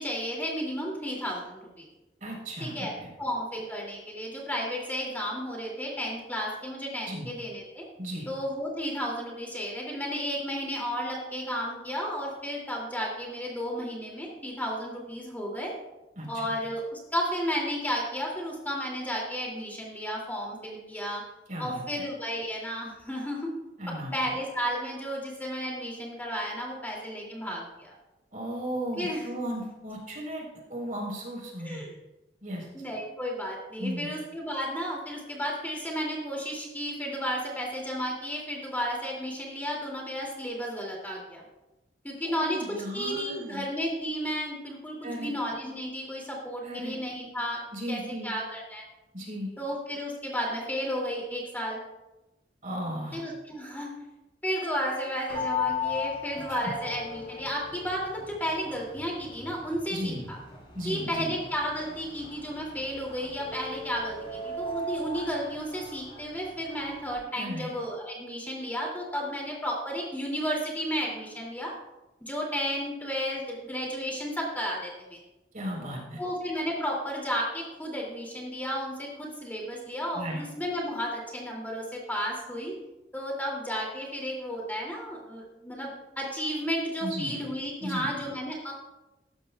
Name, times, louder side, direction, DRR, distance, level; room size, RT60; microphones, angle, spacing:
voice 1, 0.0-1.9 2.6-2.9 3.2-7.9 8.3-15.7 16.3-21.2 21.6-23.5 23.9-27.9 29.0-29.2 31.6-32.0 32.7-41.4 42.0-42.6 42.9-47.6 47.9-48.8 49.6-51.8 53.1-53.9 54.4-60.4 60.8-71.7 72.2-75.2 76.2-82.7 83.1-85.9 86.2-88.7, equal, 10° left, -2 dB, 2.6 m, -33 dB
voice 2, 2.2-3.1 7.1-7.3 8.0-8.3 16.2-16.5 21.5-21.8 23.8-24.1 28.3-30.4 30.7-31.8 32.4-32.7 33.8-34.1 42.2-43.6 45.0-45.3 46.6-46.9 47.7-48.3 49.1-49.5 52.6-53.2 56.5-56.6 59.9-60.2 60.7-61.3 67.4-67.7 75.5-76.2 80.1-80.4 87.0-87.4 87.8-88.1, equal, 50° right, -1 dB, 4.0 m, -35 dB
sound 1, 55.3-67.2, left 4 dB, 30° left, 3.6 m, -38 dB
16.5 x 13.5 x 2.3 m, 1.0 s
head